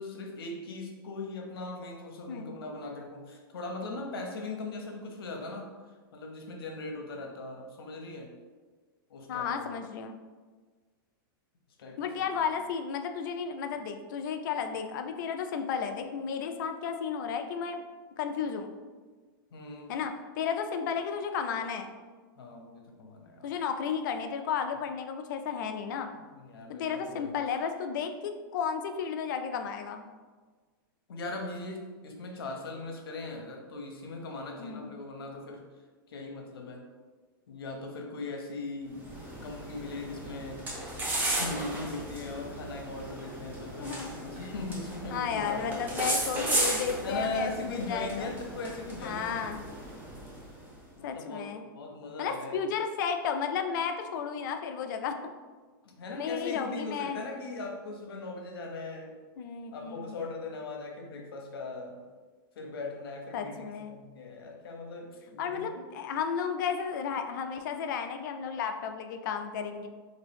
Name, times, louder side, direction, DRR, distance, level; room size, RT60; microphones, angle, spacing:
voice 1, 0.0-5.7 6.1-8.3 9.1-9.8 11.8-12.1 19.5-19.9 22.4-23.5 26.1-27.3 31.1-35.6 36.1-36.9 37.5-40.6 41.2-46.0 47.0-49.8 51.0-52.6 55.8-59.2 59.7-62.0 62.6-65.7, left 3 dB, 90° left, 2 dB, 0.7 m, -39 dB
voice 2, 9.3-10.2 12.0-17.8 18.2-18.7 19.9-21.9 23.4-26.1 26.7-30.1 34.6-34.9 43.8-44.1 44.4-44.5 45.1-48.3 49.0-49.6 51.0-51.6 52.2-55.2 56.1-57.2 59.4-60.2 63.3-64.0 65.4-69.9, left 6 dB, 60° left, 7 dB, 0.4 m, -33 dB
sound 1, 38.9-50.7, right 1 dB, 15° right, 0.6 m, -35 dB
2.9 x 2.6 x 3.3 m, 1.4 s
supercardioid pair, 145°, 12 cm